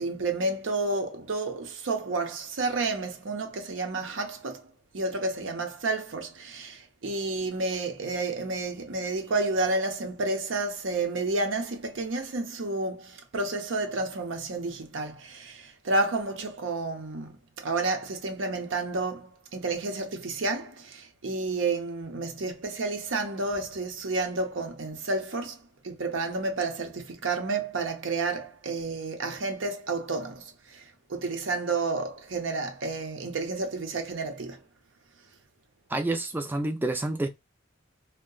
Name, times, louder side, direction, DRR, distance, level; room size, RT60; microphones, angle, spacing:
voice 1, 0.0-4.6 4.9-25.6 25.8-30.8 31.1-34.6, right 3 dB, 85° right, 0.7 m, -30 dB
voice 2, 35.9-37.3, right 2 dB, 10° right, 0.4 m, -28 dB
2.7 x 2.1 x 3.8 m
head